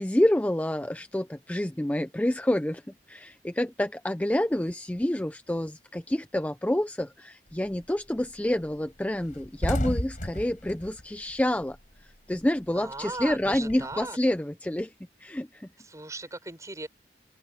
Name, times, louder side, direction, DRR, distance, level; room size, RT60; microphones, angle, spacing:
voice 1, 0.0-2.8 3.1-14.9 15.2-15.7, left 1 dB, 10° left, 0.4 m, -28 dB
sound 1, 7.5-7.8 8.2-8.4 8.6-8.8 9.1-12.1 12.4-14.0, equal, 45° left, 5.2 m, -33 dB
voice 2, 12.7-14.2 15.8-16.9, right 2 dB, 20° right, 7.0 m, -38 dB
open air
head